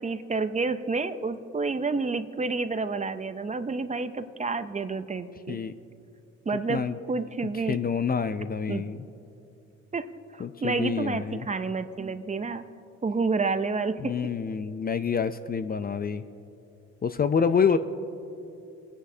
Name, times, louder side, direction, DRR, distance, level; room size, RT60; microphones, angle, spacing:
voice 1, 0.0-5.6 6.5-6.8 7.1-7.8 8.7-8.8 9.9-10.1 10.3-12.6 13.0-14.1, right 4 dB, 25° right, 11 dB, 0.6 m, -29 dB
voice 2, 7.4-9.0 10.4-11.5 14.0-16.2 17.0-17.8, left 6 dB, 30° left, 11 dB, 0.5 m, -27 dB
28.0 x 9.8 x 2.8 m, 2.8 s
cardioid pair, 90°, 30 cm